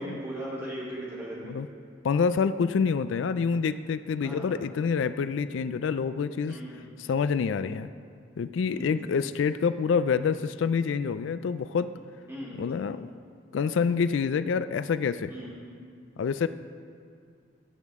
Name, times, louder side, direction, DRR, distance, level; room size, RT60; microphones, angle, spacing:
voice 1, 0.0-1.5 4.2-4.5 6.5-6.9 8.7-9.0 12.3-12.6 15.3-15.6, right 1 dB, 15° right, -7 dB, 3.2 m, -38 dB
voice 2, 2.0-6.6 7.1-7.9 8.4-11.9 12.5-13.1 13.5-15.3 16.2-16.5, left 6 dB, 80° left, 13 dB, 0.3 m, -27 dB
18.0 x 8.2 x 3.6 m, 2.4 s
head